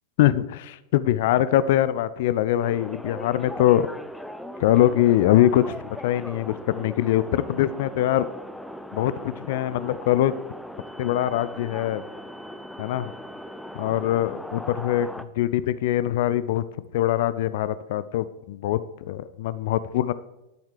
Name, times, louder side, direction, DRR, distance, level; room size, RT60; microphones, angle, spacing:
voice 1, 0.2-3.9 4.6-5.8 6.0-8.3 8.9-10.3 11.0-12.0 12.8-13.1 13.7-16.6 16.9-20.1, left 13 dB, 50° left, 15 dB, 0.5 m, -23 dB
sound 1, 2.6-15.2, equal, ahead, 0.6 m, -39 dB
11.0 x 7.3 x 4.9 m, 0.95 s
figure-of-eight pair, 90°, 0 cm